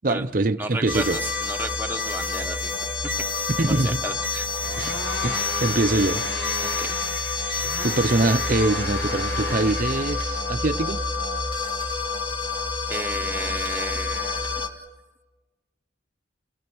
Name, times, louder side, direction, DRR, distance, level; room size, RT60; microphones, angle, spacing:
voice 1, 0.0-1.2 3.6-4.0 4.8-5.0 5.2-6.2 7.4-11.0, right 2 dB, 45° right, 0.7 m, -24 dB
sound 1, 0.6-10.5, left 1 dB, 80° left, 5.6 m, -36 dB
voice 2, 0.6-3.1 3.7-4.5 6.6-6.9 12.9-14.7, right 2 dB, 10° right, 1.1 m, -33 dB
sound 2, 0.9-14.7, left 4 dB, 25° left, 1.9 m, -28 dB
29.5 x 19.0 x 6.2 m
head